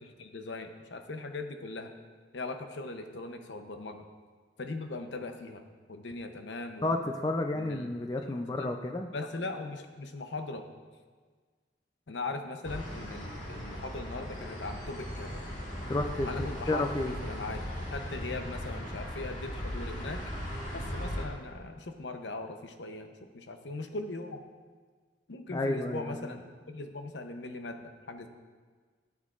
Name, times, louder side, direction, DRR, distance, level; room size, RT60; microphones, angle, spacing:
voice 1, 0.0-1.9 2.3-4.0 4.6-7.1 7.5-7.9 8.3-8.7 9.1-10.7 12.1-15.4 16.2-16.8 17.2-17.6 17.9-20.2 20.7-23.1 23.3-24.4 25.3-28.3, left 3 dB, 80° left, 6 dB, 0.7 m, -39 dB
voice 2, 6.8-9.1 15.9-17.2 25.5-26.4, left 2 dB, 20° left, 5 dB, 0.4 m, -31 dB
sound 1, 12.6-21.3, equal, 45° left, 1.6 m, -38 dB
15.0 x 7.2 x 2.4 m, 1.5 s
head